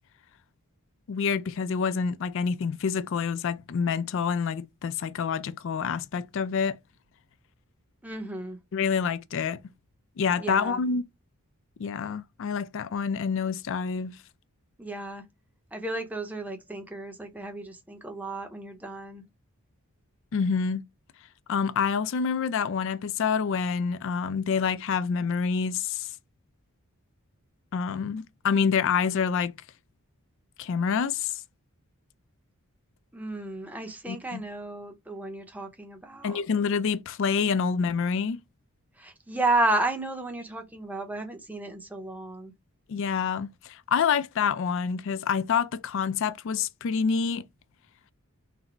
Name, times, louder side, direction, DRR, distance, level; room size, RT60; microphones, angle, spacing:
voice 1, 1.1-6.8 8.7-9.6 10.2-11.0 11.8-14.2 20.3-20.8 21.5-26.1 27.7-29.5 30.6-31.3 34.1-34.4 36.2-38.4 42.9-47.4, left 6 dB, 55° left, 0.3 m, -27 dB
voice 2, 8.0-8.6 10.4-10.8 14.8-15.2 15.7-19.2 33.1-36.4 39.0-42.5, right 2 dB, 5° right, 0.6 m, -32 dB
4.0 x 2.0 x 4.4 m
head